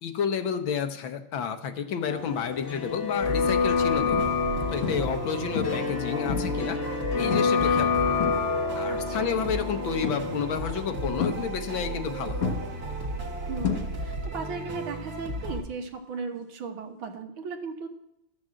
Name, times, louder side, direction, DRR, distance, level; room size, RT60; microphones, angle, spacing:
voice 1, 0.0-4.2 4.7-6.8 7.2-8.2 8.7-12.5, left 7 dB, 70° left, 8 dB, 1.6 m, -30 dB
sound 1, 2.0-13.8 14.0-14.1, left 5 dB, 45° left, 1.1 m, -29 dB
sound 2, 2.5-2.8 3.4-3.5 4.1-4.5 4.8-5.2 5.6-6.7 7.3-7.7 8.0-8.8 10.0-10.5 11.2-12.1 12.4-14.3 14.6-15.0 17.0-17.1, left 6 dB, 85° left, 2.2 m, -32 dB
sound 3, 3.2-15.6, right 1 dB, 45° right, 1.8 m, -35 dB
voice 2, 8.9-9.2 13.5-17.9, right 5 dB, 70° right, 5 dB, 1.9 m, -36 dB
12.5 x 6.3 x 7.5 m, 0.81 s
omnidirectional pair, 2.4 m